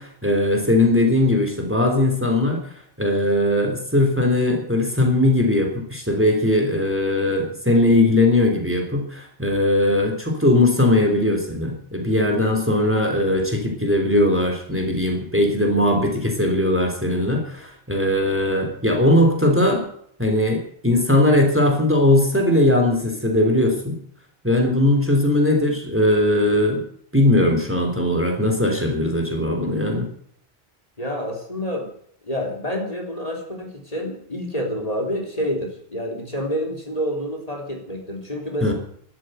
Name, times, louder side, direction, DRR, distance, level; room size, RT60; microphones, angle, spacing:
voice 1, 0.0-2.6 3.0-19.8 20.2-24.0 24.4-26.8 27.1-30.1 38.6-38.7, left 1 dB, 10° right, 3 dB, 3.4 m, -19 dB
voice 2, 31.0-31.9 32.2-38.7, equal, 35° left, 1 dB, 3.7 m, -28 dB
14.0 x 12.5 x 7.8 m, 0.64 s
omnidirectional pair, 1.1 m